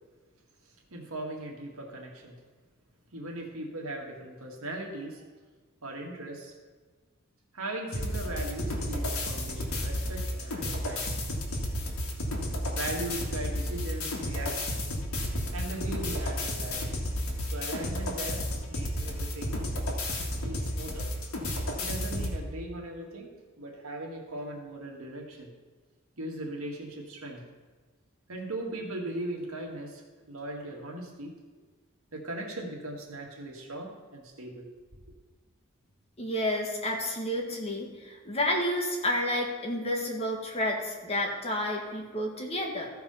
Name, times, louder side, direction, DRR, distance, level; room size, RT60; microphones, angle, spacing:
voice 1, 0.9-2.4 3.1-5.3 5.8-6.5 7.5-11.1 12.7-15.0 15.5-17.1 17.4-19.5 20.4-21.1 21.8-23.3 23.6-25.5 26.2-27.5 28.3-31.4 32.1-34.7, right 1 dB, 85° right, 1 dB, 1.8 m, -39 dB
sound 1, 7.9-22.4, left 1 dB, 85° left, 1.8 m, -32 dB
voice 2, 36.2-42.9, left 1 dB, 30° left, 0 dB, 1.5 m, -30 dB
14.0 x 4.7 x 5.6 m, 1.4 s
head